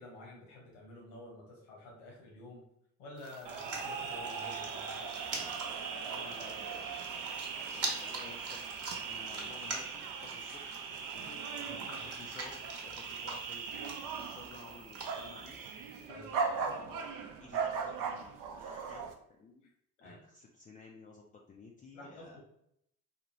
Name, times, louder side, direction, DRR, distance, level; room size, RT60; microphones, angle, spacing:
voice 1, 0.0-2.6 3.0-5.0 11.6-12.1 16.1-16.3 20.0-20.2 21.9-22.4, left 1 dB, 85° left, -3 dB, 1.1 m, -50 dB
sound 1, 3.2-16.1, right 3 dB, 40° right, 0.9 m, -45 dB
sound 2, 3.4-19.1, right 5 dB, 60° right, 0.6 m, -39 dB
voice 2, 6.1-7.3 7.6-8.6 9.1-10.6 11.1-11.4 11.9-15.6 16.4-19.7 20.0-22.4, left 4 dB, 20° left, -1 dB, 0.4 m, -53 dB
2.7 x 2.4 x 3.0 m, 0.75 s
hypercardioid pair, 50°, 37 cm